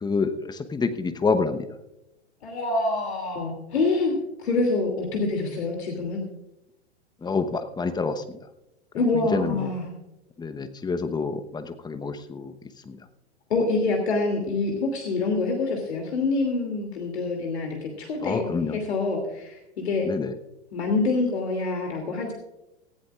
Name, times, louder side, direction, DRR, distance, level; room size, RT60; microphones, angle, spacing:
voice 1, 0.0-1.7 7.2-8.4 9.1-9.7 10.4-12.5 12.9-13.0 18.2-18.8 20.0-20.3, left 4 dB, 10° left, 9 dB, 1.0 m, -27 dB
voice 2, 2.4-6.2 8.9-9.9 13.5-20.1 20.7-22.3, left 3 dB, 70° left, 2 dB, 2.8 m, -26 dB
18.5 x 15.5 x 2.5 m, 0.90 s
figure-of-eight pair, 95°, 33 cm